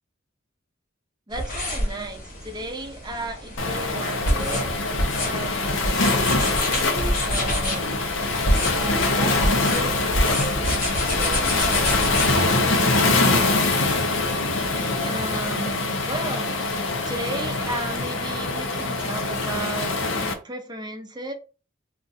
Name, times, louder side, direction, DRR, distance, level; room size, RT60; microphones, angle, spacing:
sound 1, 1.3-12.3, equal, 45° left, 1.1 m, -27 dB
voice 1, 1.3-4.7 5.2-6.0 6.4-8.0 8.7-10.7 11.1-14.8 15.0-16.5 17.0-21.3, right 1 dB, 20° right, 4 dB, 0.6 m, -35 dB
Waves surf, 3.6-20.3, left 3 dB, 80° left, 0.7 m, -24 dB
2.5 x 2.5 x 4.0 m, 0.33 s
head